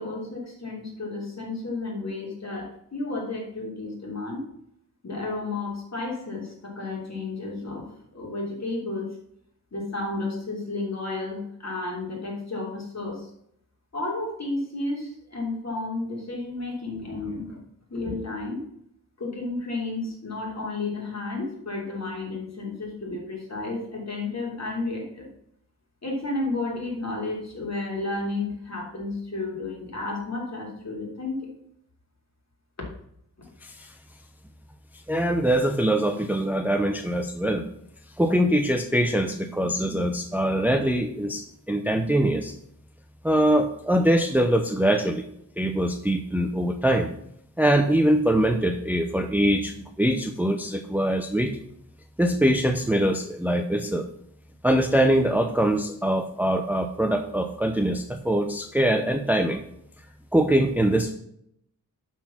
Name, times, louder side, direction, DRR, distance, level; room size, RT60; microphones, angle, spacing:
voice 1, 0.0-4.4 5.0-9.1 9.7-13.3 13.9-17.6 17.9-18.6 19.2-25.3 26.0-31.5, left 2 dB, 45° left, -2 dB, 3.1 m, -32 dB
voice 2, 35.1-37.6 38.2-42.5 43.2-45.2 45.6-47.1 47.6-51.5 52.2-54.0 54.6-59.6 60.3-61.1, right 1 dB, 5° right, 6 dB, 0.6 m, -23 dB
11.5 x 4.5 x 5.8 m, 0.72 s
wide cardioid pair, 130°, 37 cm